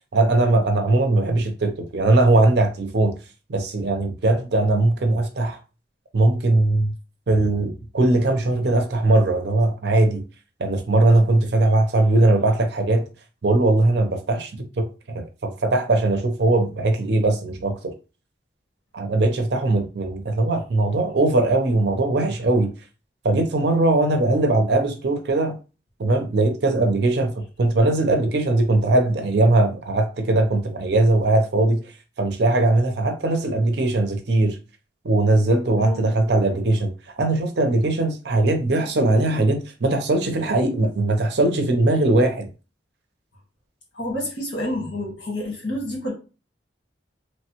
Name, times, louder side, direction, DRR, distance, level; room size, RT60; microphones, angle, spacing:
voice 1, 0.1-3.1 3.5-5.6 6.1-6.9 7.3-10.2 10.6-13.0 13.4-14.5 14.8-17.9 18.9-22.7 23.2-25.5 26.0-31.8 32.2-34.6 35.0-36.9 37.2-42.5, right 2 dB, 65° right, 0.6 m, -20 dB
voice 2, 35.8-36.1 43.9-46.1, left 1 dB, 90° left, 1.4 m, -29 dB
3.1 x 2.1 x 2.9 m
head